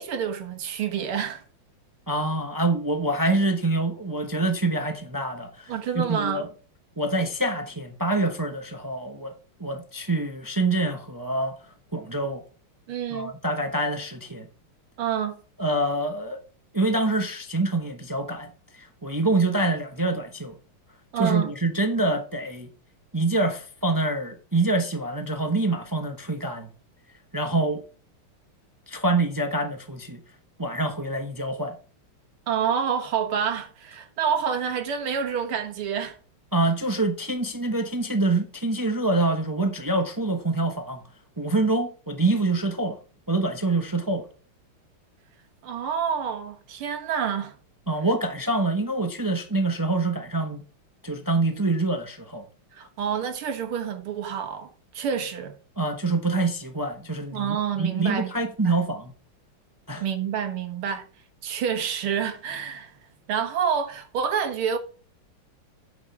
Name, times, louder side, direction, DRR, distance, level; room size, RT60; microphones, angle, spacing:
voice 1, 0.0-1.4 5.7-6.5 12.9-13.3 15.0-15.4 21.1-21.5 32.5-36.2 45.6-47.6 52.7-55.5 57.3-58.3 58.7-58.8 60.0-61.1 61.4-62.9 63.3-64.8, right 7 dB, 80° right, 2.2 m, -28 dB
voice 2, 2.1-6.5 7.0-9.3 9.6-11.6 11.9-12.4 13.1-14.5 15.6-16.4 16.7-20.5 21.2-22.7 23.1-26.7 27.3-27.8 28.9-30.2 30.6-31.8 36.5-41.0 41.4-43.0 43.3-44.3 47.9-50.6 51.0-52.4 55.8-59.1 59.9-60.0, right 2 dB, 30° right, 0.3 m, -26 dB
8.7 x 6.4 x 4.7 m
omnidirectional pair, 2.3 m